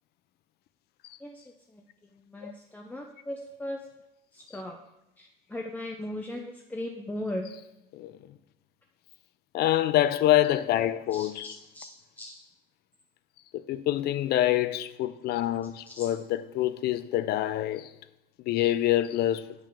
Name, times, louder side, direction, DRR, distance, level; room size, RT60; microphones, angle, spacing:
voice 1, 2.1-3.8 4.3-4.8 5.2-7.5 11.1-11.9 12.2-12.3 15.9-16.1, left 1 dB, 10° left, 0.7 m, -38 dB
voice 2, 9.5-11.6 13.5-17.9 18.5-19.5, left 13 dB, 70° left, 0.5 m, -26 dB
7.4 x 5.3 x 5.6 m
cardioid pair, 110°, 17 cm